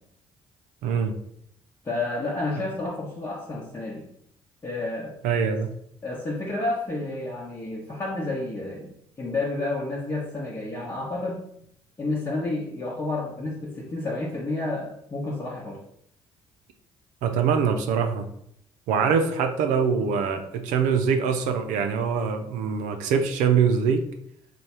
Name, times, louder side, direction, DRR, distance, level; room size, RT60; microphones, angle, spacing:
voice 1, 0.8-1.2 5.2-5.7 17.2-18.3 18.9-24.1, right 6 dB, 75° right, 6 dB, 0.5 m, -23 dB
voice 2, 1.8-4.1 4.6-5.2 6.0-11.4 12.0-15.8, left 2 dB, 25° left, -6 dB, 0.9 m, -30 dB
3.3 x 2.3 x 4.2 m, 0.71 s
hypercardioid pair, 55°, 13 cm